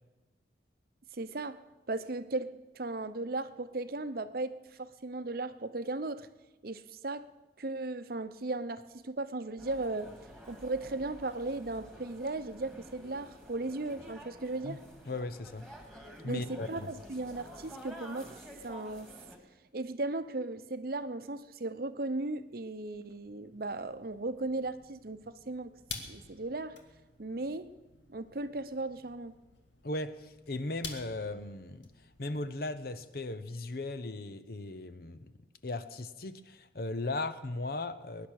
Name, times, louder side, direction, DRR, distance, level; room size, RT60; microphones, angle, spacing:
voice 1, 1.1-6.3 6.6-7.3 7.6-10.1 10.5-14.8 16.2-18.3 18.6-19.1 19.7-25.7 26.1-26.8 27.2-27.7 28.1-29.3, right 2 dB, 55° right, 12 dB, 0.8 m, -36 dB
sound 1, 9.6-19.4, equal, ahead, 2.2 m, -50 dB
voice 2, 15.1-15.7 16.2-16.9 29.8-31.9 32.2-35.3 35.6-38.3, left 2 dB, 55° left, 13 dB, 0.9 m, -37 dB
sound 2, 22.9-33.4, left 5 dB, 90° left, 1.9 m, -50 dB
21.5 x 10.5 x 6.5 m, 1.1 s
head